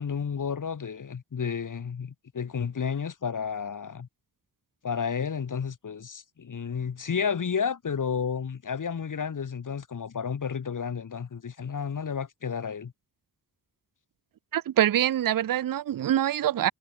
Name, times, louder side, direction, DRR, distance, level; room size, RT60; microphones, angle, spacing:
voice 1, 0.0-4.1 4.8-12.9, left 6 dB, 50° left, 2.2 m, -31 dB
voice 2, 14.5-16.7, right 11 dB, 60° right, 0.6 m, -24 dB
wide cardioid pair, 160°, 39 cm